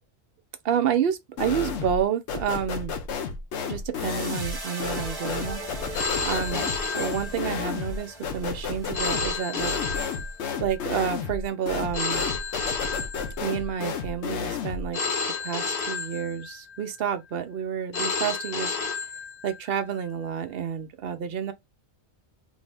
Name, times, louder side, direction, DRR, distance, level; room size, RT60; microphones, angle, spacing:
voice 1, 0.6-3.0 3.6-5.6 6.2-6.7 6.9-10.1 10.6-12.3 13.4-15.0 15.4-18.7 19.4-21.5, right 8 dB, 65° right, 0.7 m, -29 dB
sound 1, 1.4-2.0 2.3-14.9, left 5 dB, 90° left, 0.9 m, -32 dB
sound 2, 3.9-10.3, right 1 dB, 25° right, 0.9 m, -40 dB
Telephone, 5.9-7.8 8.9-10.8 11.9-13.8 14.9-16.8 17.9-19.8, left 4 dB, 55° left, 1.0 m, -31 dB
2.7 x 2.5 x 3.2 m
omnidirectional pair, 1.1 m